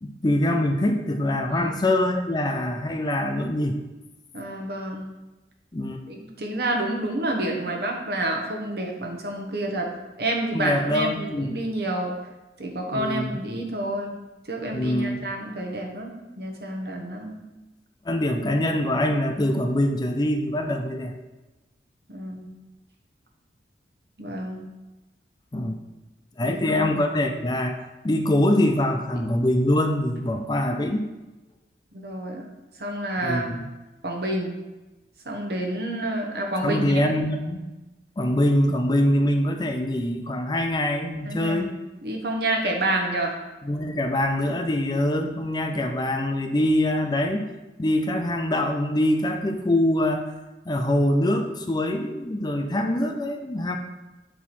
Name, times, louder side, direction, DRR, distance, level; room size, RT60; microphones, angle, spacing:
voice 1, 0.0-3.8 5.7-6.0 10.5-11.6 12.9-13.4 14.7-15.3 18.0-21.1 25.5-25.8 26.4-27.8 28.0-31.1 33.2-33.7 36.6-37.7 38.2-41.8 43.6-47.5 47.8-50.3 50.7-53.8, left 1 dB, 25° left, 4 dB, 0.5 m, -24 dB
voice 2, 4.3-5.1 6.1-9.9 10.2-12.2 12.6-14.2 14.5-17.4 22.1-22.5 24.2-24.6 26.4-27.0 32.0-32.5 32.8-33.5 34.0-34.6 35.2-37.0 41.2-41.7 42.0-43.3, right 1 dB, 60° right, 1 dB, 1.1 m, -29 dB
7.1 x 4.6 x 4.2 m, 1.1 s
head